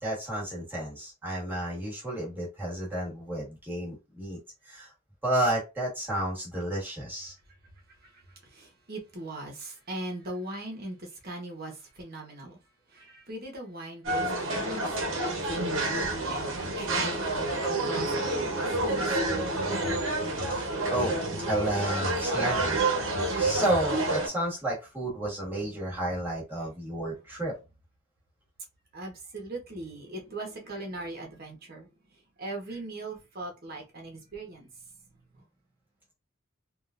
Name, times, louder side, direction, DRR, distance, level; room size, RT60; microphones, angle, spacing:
voice 1, 0.0-4.4 4.6-4.9 5.2-7.3 20.5-21.2 21.4-22.8 23.4-27.5, right 1 dB, 10° right, 1.5 m, -31 dB
voice 2, 8.5-12.6 12.9-17.4 17.8-19.2 19.4-20.2 20.5-20.8 28.9-31.9 32.4-34.7 35.3-35.4, right 2 dB, 50° right, 1.1 m, -40 dB
sound 1, 14.0-24.3, right 2 dB, 70° right, 1.0 m, -28 dB
3.6 x 2.4 x 2.5 m
head